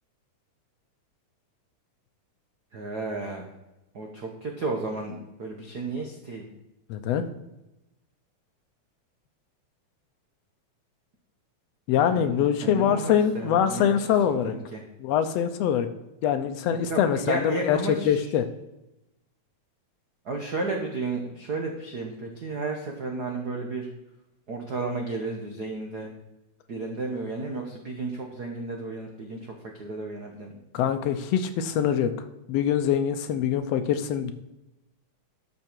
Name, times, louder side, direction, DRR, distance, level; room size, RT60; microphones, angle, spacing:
voice 1, 2.7-3.5 3.9-6.4 12.1-14.8 16.7-18.3 20.2-23.9 24.5-26.1 26.7-30.5, right 3 dB, 75° right, 2 dB, 0.9 m, -33 dB
voice 2, 6.9-7.2 11.9-14.6 15.0-15.9 16.2-17.8 18.1-18.5 30.7-32.1 32.5-34.3, left 9 dB, 80° left, 9 dB, 1.5 m, -24 dB
12.0 x 6.2 x 4.6 m, 0.94 s
omnidirectional pair, 3.5 m